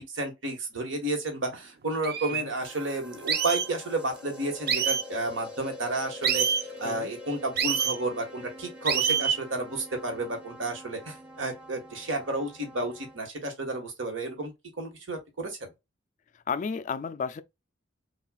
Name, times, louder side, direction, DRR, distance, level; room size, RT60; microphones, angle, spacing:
voice 1, 0.0-6.5 6.8-15.7, right 2 dB, 70° right, 1.5 m, -32 dB
sound 1, 1.5-1.6 2.0-2.4 3.3-3.7 4.7-5.1 6.2-6.6 7.6-8.0 8.9-9.4, right 7 dB, 50° right, 0.6 m, -26 dB
sound 2, 2.6-13.2, left 2 dB, 5° right, 0.9 m, -45 dB
voice 2, 16.5-17.4, left 5 dB, 40° left, 0.3 m, -32 dB
5.5 x 2.4 x 2.3 m
head